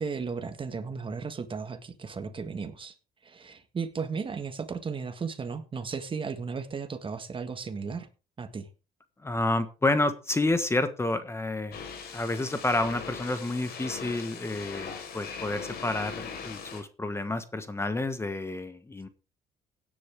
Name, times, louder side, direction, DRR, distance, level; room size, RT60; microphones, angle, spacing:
voice 1, 0.0-2.9 3.2-8.1 8.4-8.7, right 5 dB, 30° right, 1.6 m, -35 dB
voice 2, 9.2-11.8 12.1-19.1, left 2 dB, 15° left, 1.3 m, -29 dB
sound 1, 11.7-16.8, left 6 dB, 70° left, 4.5 m, -40 dB
16.5 x 10.0 x 3.5 m
cardioid pair, 110°, 17 cm